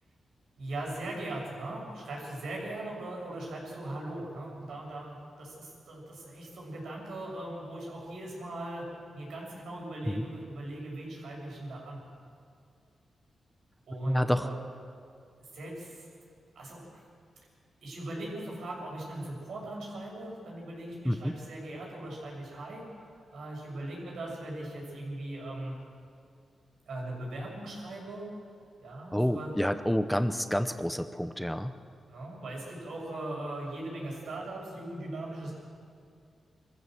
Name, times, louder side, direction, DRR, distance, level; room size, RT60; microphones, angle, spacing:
voice 1, 0.6-8.9 9.1-12.0 13.9-14.6 15.5-16.0 16.5-17.0 17.8-25.8 26.9-28.3 28.8-29.6 32.1-35.5, right 1 dB, 80° right, -2 dB, 6.7 m, -39 dB
voice 2, 14.0-14.5 21.0-21.3 29.1-31.8, equal, ahead, 10 dB, 0.8 m, -28 dB
23.0 x 14.5 x 7.7 m, 2.3 s
cardioid pair, 100°, 0 cm